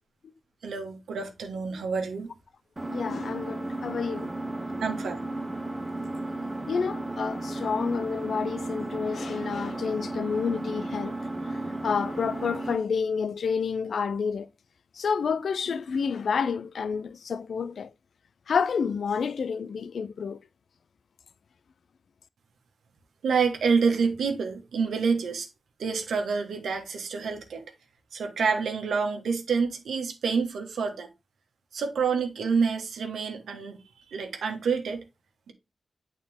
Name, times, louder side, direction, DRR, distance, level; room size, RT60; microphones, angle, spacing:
voice 1, 0.6-2.3 4.8-5.2 23.2-25.5 25.8-27.6 28.1-31.1 31.7-33.8 34.1-35.0, right 5 dB, 85° right, 1.3 m, -27 dB
Engine, 2.8-12.8, right 2 dB, 25° right, 1.0 m, -34 dB
voice 2, 2.9-4.3 6.7-11.2 11.8-14.5 15.0-17.9 18.5-20.4, left 6 dB, 75° left, 0.4 m, -29 dB
8.7 x 4.1 x 3.5 m
cardioid pair, 45°, 0 cm